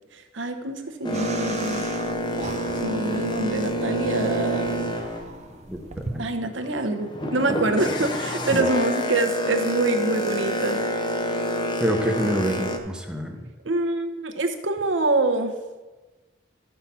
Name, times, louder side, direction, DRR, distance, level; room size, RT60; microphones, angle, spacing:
voice 1, 0.1-1.9 2.8-4.8 6.2-10.8 13.6-15.5, right 2 dB, 80° right, 6 dB, 0.9 m, -25 dB
Boat Water vehicle, 1.0-6.1 6.5-12.8, equal, 25° left, 0.7 m, -28 dB
sound 1, 1.1-6.2, right 3 dB, 35° right, 0.6 m, -38 dB
voice 2, 11.8-13.5, equal, 5° right, 2 dB, 0.9 m, -26 dB
12.5 x 5.7 x 4.3 m, 1.2 s
head